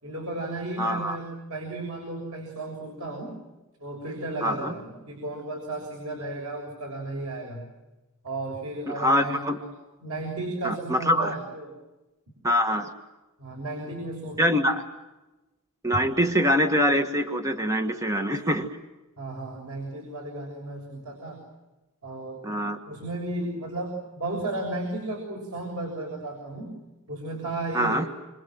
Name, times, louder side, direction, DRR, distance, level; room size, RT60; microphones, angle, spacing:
voice 1, 0.0-3.3 3.8-7.6 8.2-9.7 10.0-11.7 13.4-14.7 19.2-21.4 22.0-22.4 22.9-26.7 27.1-28.0, right 2 dB, 80° right, 2 dB, 6.9 m, -34 dB
voice 2, 0.8-1.2 4.4-4.7 8.9-9.6 10.6-11.4 12.4-12.9 14.4-14.8 15.8-18.7 22.4-22.8 27.7-28.0, equal, 15° right, 5 dB, 1.6 m, -24 dB
28.5 x 26.0 x 7.8 m, 1.0 s
head